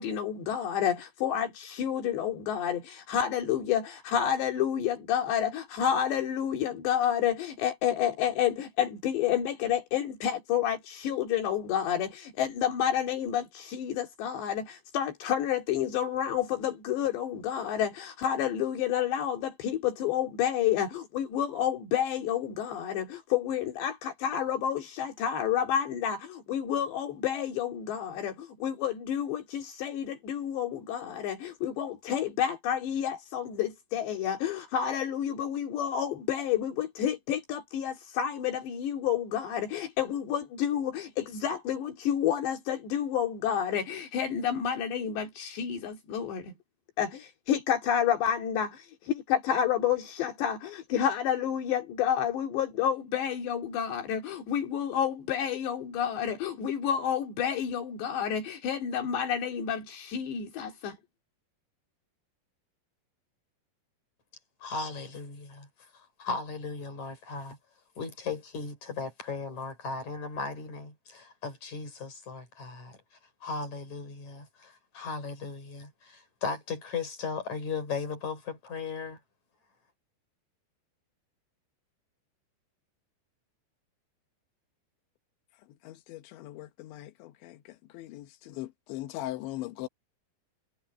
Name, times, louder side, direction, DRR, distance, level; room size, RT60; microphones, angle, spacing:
voice 1, 0.0-46.5 47.0-61.0, left 9 dB, 75° left, 4.6 m, -29 dB
voice 2, 64.6-65.7 65.9-67.6 68.0-73.0 73.4-79.2, left 4 dB, 40° left, 6.6 m, -37 dB
voice 3, 85.8-87.6 87.9-89.9, left 15 dB, 90° left, 3.5 m, -40 dB
omnidirectional pair, 5.1 m